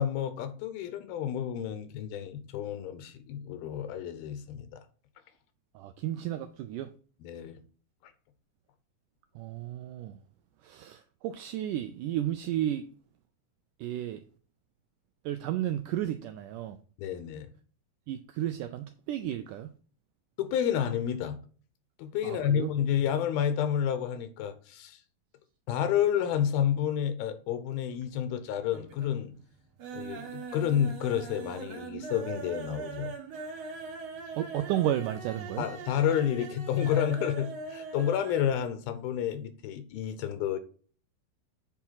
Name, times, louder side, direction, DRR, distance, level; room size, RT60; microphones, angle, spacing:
voice 1, 0.0-4.8 7.2-7.6 17.0-17.5 20.4-21.4 22.0-25.0 25.7-29.3 29.9-33.1 35.6-40.6, left 9 dB, 80° left, 2.8 m, -30 dB
voice 2, 5.7-6.9 9.4-10.2 10.6-12.9 13.8-14.2 15.3-16.8 18.1-19.7 22.2-22.7 34.4-35.7, right 12 dB, 85° right, 1.8 m, -33 dB
sound 1, 27.8-28.4 28.7-29.2 29.5-38.5 38.8-38.9 39.2-39.3, right 5 dB, 55° right, 2.2 m, -41 dB
8.2 x 4.5 x 5.7 m
omnidirectional pair, 4.3 m